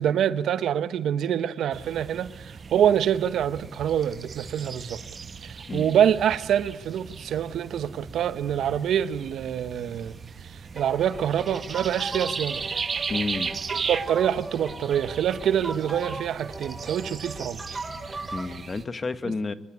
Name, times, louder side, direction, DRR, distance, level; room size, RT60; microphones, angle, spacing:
voice 1, 0.0-5.0 5.4-10.1 10.5-12.6 13.9-17.8, right 9 dB, 75° right, 1.2 m, -26 dB
sound 1, 1.7-18.9, right 5 dB, 50° right, 1.6 m, -37 dB
sound 2, 10.8-18.5, right 2 dB, 25° right, 5.0 m, -38 dB
voice 2, 13.1-13.5 18.3-19.5, left 3 dB, 40° left, 1.9 m, -30 dB
24.5 x 23.5 x 9.6 m
supercardioid pair, 50°, 0 cm